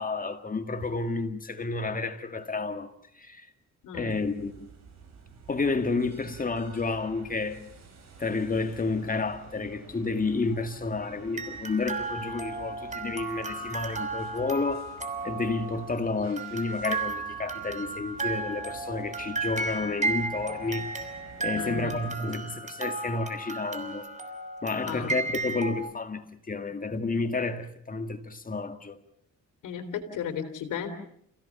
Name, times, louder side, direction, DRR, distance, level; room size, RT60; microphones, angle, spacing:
voice 1, 0.0-2.9 3.1-3.5 3.9-4.7 5.5-7.6 8.2-14.8 15.2-21.1 21.4-24.1 24.6-29.0, left 3 dB, 30° left, 2.1 m, -31 dB
voice 2, 3.8-4.2 21.5-22.0 24.9-25.1 29.6-30.9, left 8 dB, 85° left, 3.1 m, -34 dB
sound 1, 4.1-22.1, right 4 dB, 60° right, 7.7 m, -51 dB
sound 2, 11.0-11.1 11.4-16.0 16.4-25.7, right 3 dB, 25° right, 3.4 m, -34 dB
29.5 x 16.5 x 7.2 m
cardioid pair, 90°, 30 cm